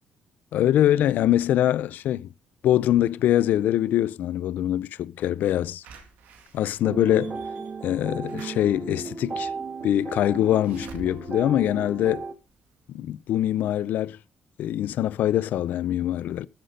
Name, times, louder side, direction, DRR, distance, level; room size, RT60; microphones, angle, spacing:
voice 1, 0.5-2.3 2.6-5.8 6.5-7.4 7.8-9.5 9.8-12.3 12.9-14.2 14.6-16.5, left 12 dB, 75° left, 0.5 m, -23 dB
Slam / Alarm, 5.8-12.7 13.1-13.2 13.5-13.6, right 5 dB, 80° right, 2.2 m, -50 dB
sound 1, 6.8-12.3, right 4 dB, 45° right, 1.9 m, -35 dB
13.5 x 5.9 x 5.3 m
hypercardioid pair, 50°, 3 cm